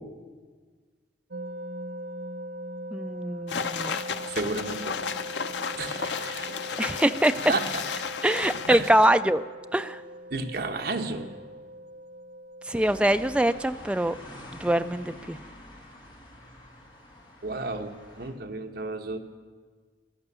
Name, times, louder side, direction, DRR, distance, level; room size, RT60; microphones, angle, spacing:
sound 1, 1.3-13.6, right 1 dB, 85° right, 0.8 m, -41 dB
voice 1, 2.9-4.0 6.8-7.4 8.2-9.4 9.7-10.0 12.7-14.2 14.6-15.4, right 1 dB, 5° right, 10 dB, 0.3 m, -24 dB
sound 2, 3.5-9.1, left 6 dB, 85° left, 0.6 m, -33 dB
voice 2, 4.3-5.1 5.8-6.6 7.4-7.8 8.7-8.9 10.3-11.3 17.4-19.2, right 3 dB, 60° right, 4 dB, 1.2 m, -32 dB
sound 3, 12.7-18.3, left 1 dB, 25° left, 2.4 m, -47 dB
14.5 x 11.5 x 6.9 m, 1.5 s
head